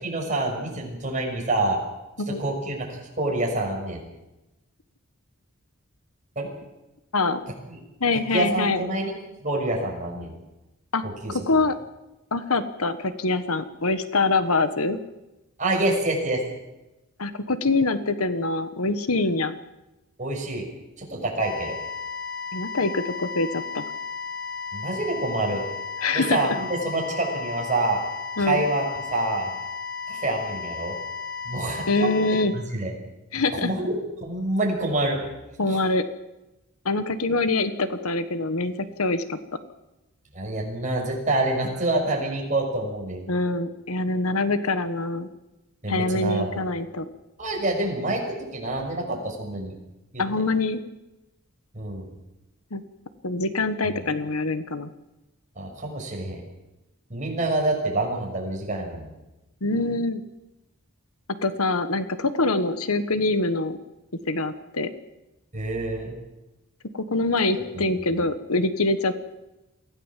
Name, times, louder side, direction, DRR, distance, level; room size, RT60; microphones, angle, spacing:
voice 1, 0.0-1.8 2.4-4.0 6.3-6.5 7.7-7.8 8.3-9.1 9.4-10.3 11.0-11.6 15.6-16.4 20.2-20.6 21.0-21.8 24.7-25.6 26.1-28.0 28.4-28.8 29.1-29.5 30.1-31.0 31.4-32.1 32.5-32.9 33.4-35.2 35.7-35.8 40.3-43.2 45.8-46.6 47.4-49.7 50.1-50.2 51.7-52.1 53.8-54.0 55.6-56.4 57.1-59.1 65.5-66.1 67.7-67.8, right 2 dB, 35° right, 0 dB, 6.3 m, -27 dB
voice 2, 8.0-8.8 10.9-11.0 11.3-11.7 12.3-15.0 17.2-19.6 22.5-23.8 26.0-26.5 28.4-28.6 31.9-32.5 33.3-33.7 35.6-36.0 36.8-39.4 43.3-45.3 45.9-47.1 50.2-50.8 52.7-52.8 53.2-54.9 59.6-60.2 61.4-63.8 64.3-64.9 66.9-69.1, left 3 dB, 80° left, 11 dB, 1.4 m, -24 dB
sound 1, 21.4-32.5, left 5 dB, 55° left, 2.1 m, -34 dB
23.5 x 16.5 x 7.4 m, 1.0 s
head